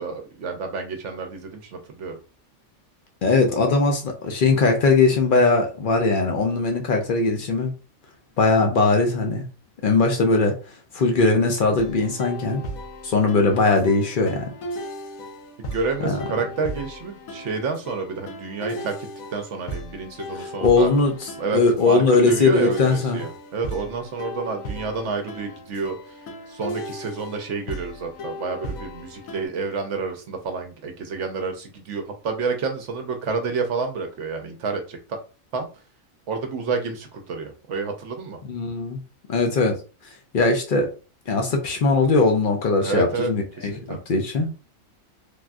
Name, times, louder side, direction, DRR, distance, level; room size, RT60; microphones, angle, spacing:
voice 1, 0.0-2.2 15.6-18.9 19.3-20.9 21.4-35.2 35.5-35.7 36.3-38.4 42.8-43.3 43.6-44.0, right 4 dB, 65° right, 5 dB, 0.9 m, -29 dB
voice 2, 3.2-7.7 8.4-9.5 9.8-10.6 10.9-12.6 13.0-14.5 16.0-16.2 20.6-21.1 21.5-23.2 38.5-39.0 39.3-39.8 40.3-40.9 41.3-44.5, left 3 dB, 60° left, 3 dB, 0.5 m, -20 dB
sound 1, 11.8-29.5, equal, 80° left, 1.1 m, -36 dB
3.3 x 2.5 x 2.3 m, 0.34 s
omnidirectional pair, 1.4 m